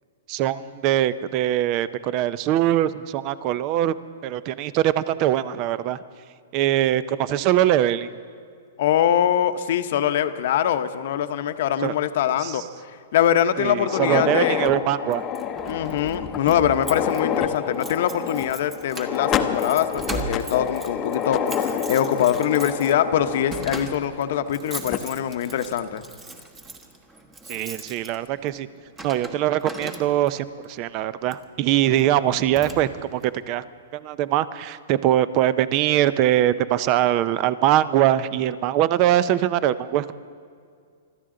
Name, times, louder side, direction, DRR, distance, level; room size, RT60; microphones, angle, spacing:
voice 1, 0.3-3.9 4.2-6.0 6.5-8.1 11.8-11.9 12.4-12.6 13.6-15.2 27.5-28.7 29.0-33.6 33.9-40.1, right 12 dB, 35° right, 16 dB, 0.5 m, -22 dB
voice 2, 8.8-12.6 13.1-14.7 15.7-26.0, left 10 dB, 60° left, 9 dB, 0.8 m, -23 dB
sound 1, 13.8-24.5 24.9-25.0 25.8-25.9 26.4-26.5 27.8-28.1, left 8 dB, 25° left, 0.8 m, -29 dB
Keys jangling, 15.1-30.5 31.2-31.5 32.0-32.1 32.3-33.2, right 2 dB, 15° right, 1.2 m, -39 dB
25.0 x 13.5 x 3.8 m, 2.2 s
hypercardioid pair, 145°, 0 cm